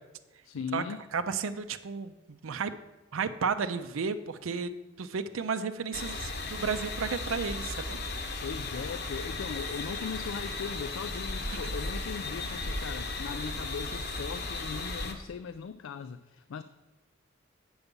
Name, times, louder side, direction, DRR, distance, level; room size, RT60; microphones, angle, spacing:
voice 1, 0.4-1.0 8.4-16.6, left 6 dB, 75° left, 11 dB, 0.4 m, -39 dB
voice 2, 1.1-2.7 3.1-4.7 5.0-8.0, right 5 dB, 85° right, 10 dB, 0.5 m, -33 dB
sound 1, 5.9-15.1, left 2 dB, 50° left, 0.9 m, -36 dB
8.1 x 7.0 x 5.3 m, 1.1 s
head